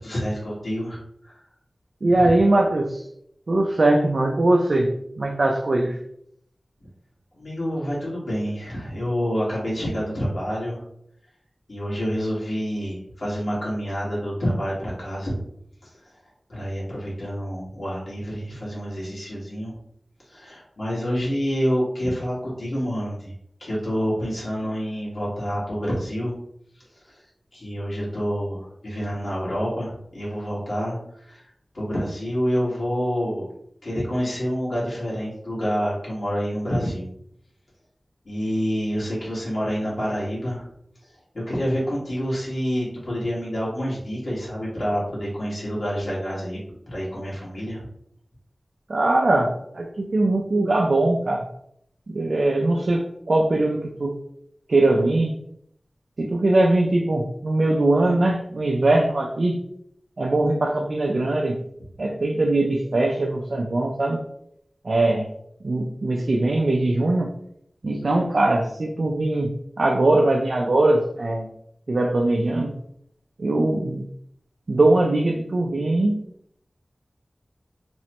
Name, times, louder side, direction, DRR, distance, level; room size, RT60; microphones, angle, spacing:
voice 1, 0.0-1.4 7.3-10.8 11.7-15.4 15.8-16.2 16.5-19.7 20.2-23.3 23.6-26.3 26.7-27.2 27.5-31.5 31.7-33.4 33.8-37.1 38.2-40.6 41.0-46.6 46.9-47.8, equal, 75° left, -7 dB, 1.3 m, -28 dB
voice 2, 2.0-3.0 3.5-6.0 48.9-51.4 52.1-54.2 54.7-55.3 56.2-59.6 60.2-61.6 62.0-64.2 64.8-65.3 65.6-67.3 67.8-71.5 71.9-72.7 73.4-74.0 74.7-76.2, right 2 dB, 75° right, 1 dB, 0.3 m, -21 dB
2.9 x 2.1 x 2.8 m, 0.72 s
wide cardioid pair, 55°, 0 cm